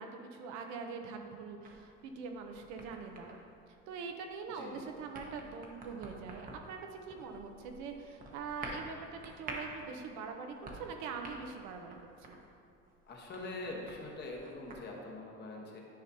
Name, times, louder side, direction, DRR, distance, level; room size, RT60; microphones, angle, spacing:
voice 1, 0.0-3.4 3.9-12.4, right 5 dB, 70° right, 4 dB, 0.8 m, -43 dB
sound 1, 1.6-14.9, right 2 dB, 30° right, 1.0 m, -50 dB
voice 2, 13.0-15.8, left 2 dB, 35° left, -1 dB, 1.1 m, -43 dB
10.0 x 5.1 x 2.8 m, 2.5 s
cardioid pair, 120°, 30 cm